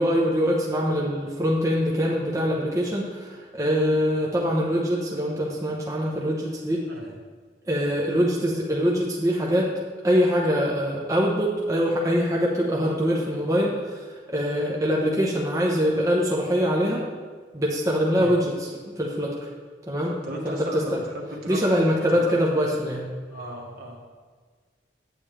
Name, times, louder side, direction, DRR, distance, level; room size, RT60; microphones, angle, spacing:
voice 1, 0.0-6.8 7.7-9.7 10.0-17.1 17.5-19.5 19.9-20.2 20.4-21.0 21.5-23.1, equal, 20° right, -3 dB, 0.9 m, -24 dB
voice 2, 20.2-21.8 22.3-22.4 23.3-24.0, equal, 60° right, -1 dB, 1.7 m, -35 dB
9.2 x 8.8 x 3.3 m, 1.5 s
head